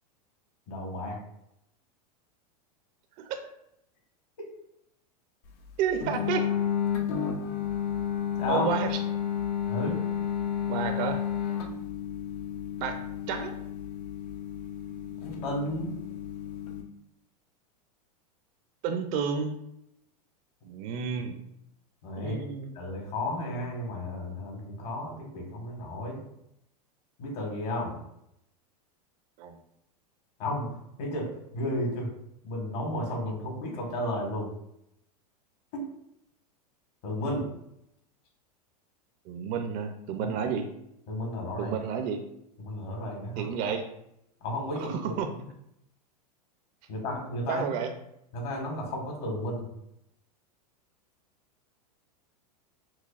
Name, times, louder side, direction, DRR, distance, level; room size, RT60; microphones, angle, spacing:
voice 1, 0.7-1.2 4.4-4.5 8.4-8.7 9.6-10.0 15.2-15.9 22.0-22.4 22.7-26.2 27.2-28.0 30.4-32.1 32.4-34.5 37.0-37.5 40.2-40.3 41.1-41.7 42.6-43.5 44.4-45.2 46.9-47.8 48.3-49.7, left 1 dB, 60° left, 1 dB, 1.5 m, -33 dB
voice 2, 5.8-6.4 8.5-9.0 10.7-11.2 12.8-13.0 13.3-13.5 18.8-19.6 20.6-21.4 22.2-22.7 29.4-29.6 39.3-40.7 41.6-42.2 43.4-43.9 44.8-45.3 47.5-47.9, right 6 dB, 45° right, 6 dB, 0.5 m, -31 dB
sound 1, 6.0-16.8, left 9 dB, 75° left, 0.7 m, -32 dB
5.8 x 2.2 x 2.4 m, 0.79 s
hypercardioid pair, 120°, 20 cm